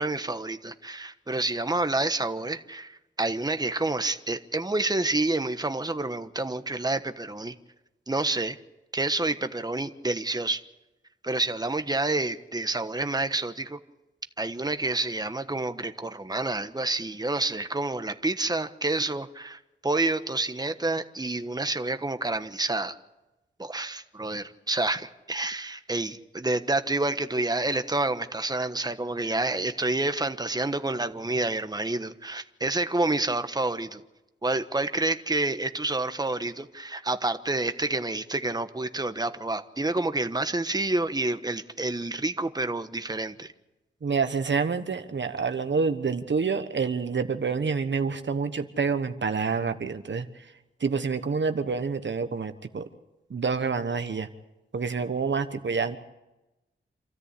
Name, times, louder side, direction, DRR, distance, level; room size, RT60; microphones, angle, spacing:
voice 1, 0.0-7.5 8.1-8.6 8.9-10.6 11.2-13.8 14.4-22.9 23.6-34.0 34.4-43.5, right 2 dB, 20° right, 9 dB, 1.3 m, -28 dB
voice 2, 44.0-50.5 50.8-52.9 53.3-54.3 54.7-56.0, right 5 dB, 65° right, 9 dB, 1.3 m, -27 dB
27.5 x 13.5 x 8.4 m, 1.0 s
cardioid pair, 60°, 21 cm